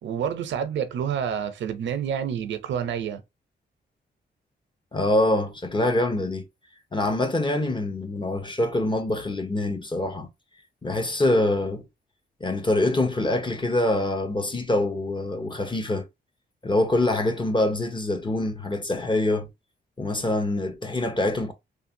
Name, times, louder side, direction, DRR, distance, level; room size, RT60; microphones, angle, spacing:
voice 1, 0.0-3.2, right 8 dB, 90° right, 0.7 m, -28 dB
voice 2, 4.9-6.4 6.9-10.3 10.8-11.8 12.4-16.0 16.6-19.5 20.0-21.5, left 1 dB, 25° left, 1.0 m, -25 dB
3.2 x 2.5 x 2.7 m
cardioid pair, 80°, 19 cm